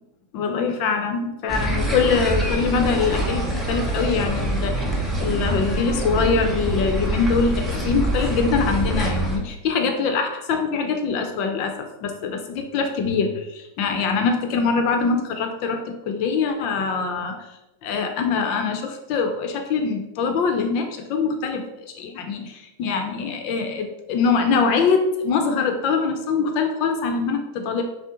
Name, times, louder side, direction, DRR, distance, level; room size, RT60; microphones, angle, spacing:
voice 1, 0.3-4.7 5.2-11.7 12.0-15.8 16.1-17.3 17.8-21.6 21.9-27.8, left 5 dB, 50° left, 5 dB, 0.7 m, -23 dB
sound 1, 1.5-9.4, right 1 dB, 5° right, 0.8 m, -25 dB
5.5 x 2.1 x 3.8 m, 0.95 s
supercardioid pair, 130°, 0 cm